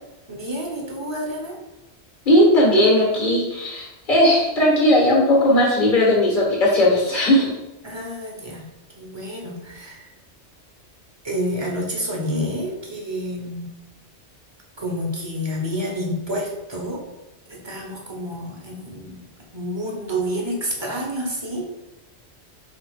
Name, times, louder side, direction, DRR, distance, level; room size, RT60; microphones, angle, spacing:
voice 1, 0.3-1.6 7.8-8.7 9.0-10.1 11.2-13.7 14.8-17.0 17.5-19.2 19.5-21.7, equal, 25° right, -1 dB, 0.8 m, -29 dB
voice 2, 2.2-7.5, left 1 dB, 45° left, -3 dB, 1.5 m, -17 dB
4.8 x 4.4 x 2.3 m, 0.97 s
omnidirectional pair, 1.2 m